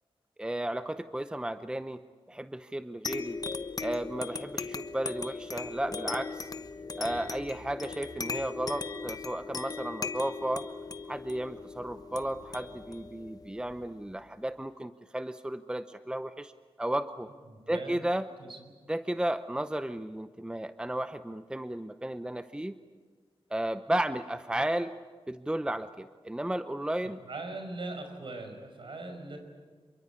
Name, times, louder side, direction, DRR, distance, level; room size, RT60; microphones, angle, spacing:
voice 1, 0.4-2.0 2.3-3.4 3.8-6.5 7.0-10.7 11.1-16.5 16.8-17.3 17.7-18.3 18.9-22.7 23.5-24.9 25.3-27.2, right 1 dB, 10° right, 11 dB, 0.7 m, -33 dB
sound 1, 3.0-14.1, left 4 dB, 40° left, 1.1 m, -38 dB
voice 2, 17.5-18.0 18.4-18.6 27.0-29.4, right 2 dB, 60° right, 5 dB, 5.5 m, -40 dB
27.0 x 23.5 x 8.4 m, 1.5 s
wide cardioid pair, 85°, 10 cm